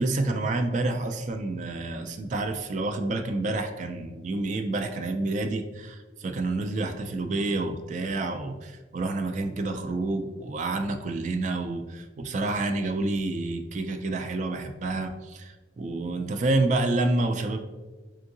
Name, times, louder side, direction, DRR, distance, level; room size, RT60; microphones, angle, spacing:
voice 1, 0.0-17.6, right 2 dB, 40° right, 6 dB, 0.3 m, -28 dB
3.7 x 3.5 x 2.6 m, 1.2 s
head